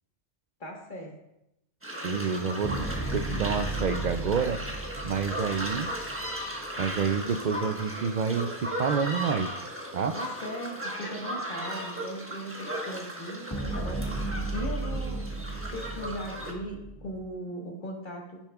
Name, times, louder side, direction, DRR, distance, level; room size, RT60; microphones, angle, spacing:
voice 1, 0.6-1.1 10.1-14.2 14.5-15.2 15.7-18.4, equal, 40° left, 0 dB, 1.6 m, -38 dB
sound 1, 1.8-16.5, equal, 10° right, 1.2 m, -36 dB
voice 2, 2.0-2.9 3.1-4.6 5.0-5.9 6.8-9.6 9.9-10.1, right 6 dB, 70° right, 8 dB, 0.4 m, -28 dB
sound 2, 2.6-6.9 13.5-17.3, right 2 dB, 15° left, 1.6 m, -35 dB
15.5 x 7.1 x 2.3 m, 0.88 s
omnidirectional pair, 1.3 m